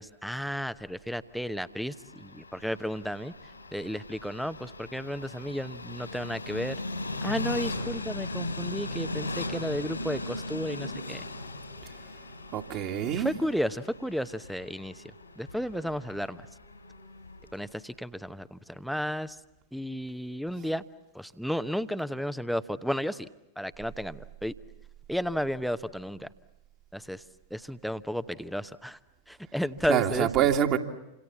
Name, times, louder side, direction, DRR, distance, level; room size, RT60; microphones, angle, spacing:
voice 1, 0.0-3.3 3.7-6.8 7.2-11.2 13.1-15.0 15.4-16.5 17.5-19.4 19.7-20.8 21.1-23.3 23.6-24.5 25.1-26.3 26.9-27.2 27.5-29.0 29.3-30.3, equal, ahead, 0.9 m, -33 dB
Train, 1.5-17.6, left 2 dB, 80° left, 4.1 m, -38 dB
voice 2, 12.5-13.3 29.9-30.8, right 10 dB, 40° right, 2.4 m, -25 dB
28.5 x 27.0 x 7.2 m
figure-of-eight pair, 90°, 0 cm